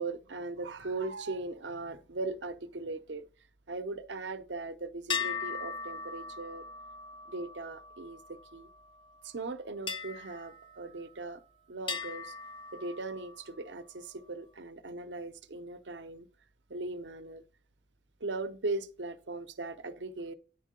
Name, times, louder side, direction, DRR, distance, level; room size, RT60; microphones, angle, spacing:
voice 1, 0.0-3.3 3.7-6.6 7.3-8.7 9.2-11.4 11.7-12.3 12.7-16.3 16.7-17.4 18.2-20.3, right 3 dB, 80° right, 0.7 m, -39 dB
sound 1, 5.1-8.8 9.9-11.4 11.9-13.6, left 5 dB, 25° left, 0.5 m, -39 dB
9.9 x 3.7 x 5.2 m
head